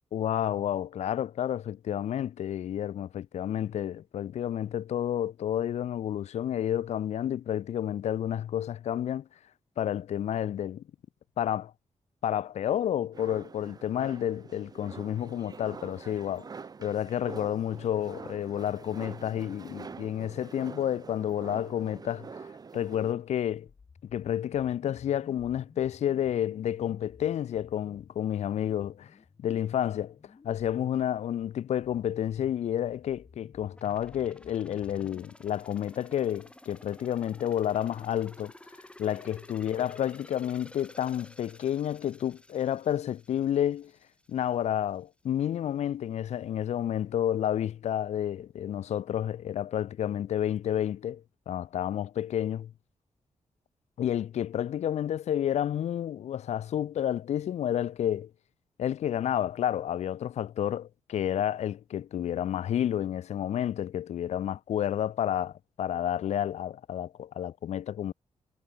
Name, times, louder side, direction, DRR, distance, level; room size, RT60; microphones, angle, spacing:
voice 1, 0.1-9.3 9.8-10.8 11.4-11.7 12.2-16.5 16.8-22.3 22.7-23.7 24.1-29.1 29.4-30.2 30.4-38.5 39.0-43.9 44.3-52.7 54.0-58.3 58.8-68.1, left 10 dB, 70° left, 0.4 m, -30 dB
sound 1, 13.1-23.1, right 5 dB, 35° right, 0.7 m, -46 dB
sound 2, 32.8-35.2, left 5 dB, 40° left, 6.5 m, -55 dB
sound 3, 33.8-44.5 44.9-45.0, left 1 dB, 10° left, 5.5 m, -53 dB
wide cardioid pair, 135°, 12 cm